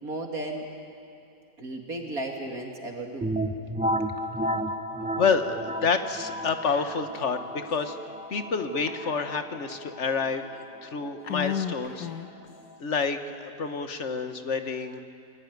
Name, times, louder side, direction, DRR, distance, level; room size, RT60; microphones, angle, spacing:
voice 1, 0.0-0.7 1.6-3.3, right 2 dB, 55° right, 1 dB, 2.9 m, -34 dB
sound 1, 3.2-12.8, equal, 5° right, 0.7 m, -34 dB
voice 2, 5.2-7.4 7.7-8.0 8.3-10.4 10.8-12.1 12.8-15.0, left 5 dB, 45° left, 8 dB, 1.6 m, -28 dB
Whispering, 6.6-7.3 7.6-7.7 8.9-9.7 10.3-10.4 11.2-12.5, left 10 dB, 70° left, 1.6 m, -35 dB
28.5 x 21.5 x 9.5 m, 2.5 s
omnidirectional pair, 1.9 m